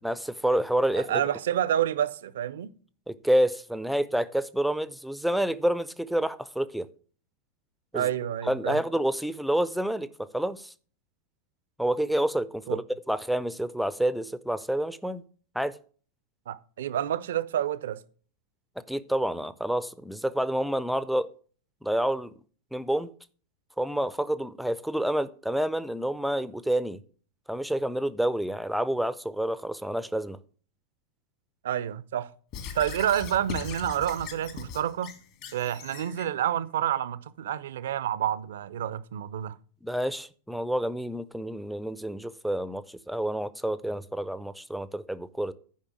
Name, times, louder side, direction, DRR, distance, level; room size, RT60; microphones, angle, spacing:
voice 1, 0.0-1.1 3.1-6.9 7.9-8.1 8.4-10.7 11.8-12.8 13.1-15.2 15.5-15.8 18.9-21.3 21.8-22.3 22.7-23.1 23.8-27.0 27.5-30.4 39.8-45.5, right 1 dB, ahead, 0.5 m, -28 dB
voice 2, 0.9-2.7 7.9-8.8 12.7-12.8 16.5-18.0 31.6-32.3 32.7-35.1 35.5-39.6, right 10 dB, 60° right, 0.5 m, -29 dB
Squeak / Writing, 32.5-36.3, left 7 dB, 45° left, 1.7 m, -40 dB
10.0 x 5.2 x 6.3 m
figure-of-eight pair, 90°, 0 cm